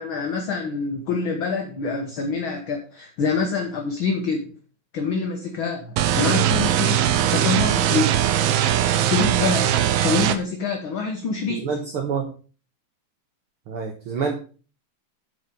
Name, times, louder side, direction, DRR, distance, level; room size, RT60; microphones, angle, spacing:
voice 1, 0.0-4.5 4.9-8.1 9.0-11.6, left 4 dB, 55° left, 2 dB, 1.5 m, -26 dB
sound 1, 6.0-10.4, right 11 dB, 70° right, 1.6 m, -20 dB
voice 2, 11.5-12.3 13.7-14.4, right 5 dB, 55° right, 2 dB, 1.7 m, -28 dB
9.8 x 5.0 x 5.2 m, 0.38 s
omnidirectional pair, 3.4 m